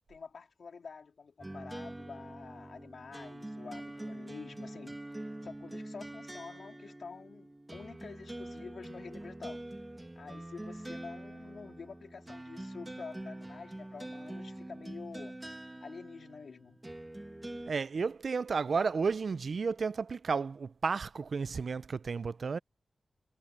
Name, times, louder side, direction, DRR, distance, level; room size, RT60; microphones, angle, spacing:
voice 1, 0.1-9.6 10.2-15.4 15.8-16.8, left 5 dB, 70° left, 3.5 m, -48 dB
sound 1, 1.4-17.7, right 1 dB, 15° right, 1.8 m, -45 dB
voice 2, 17.7-22.6, right 5 dB, 65° right, 0.4 m, -32 dB
wide cardioid pair, 85°, 0 cm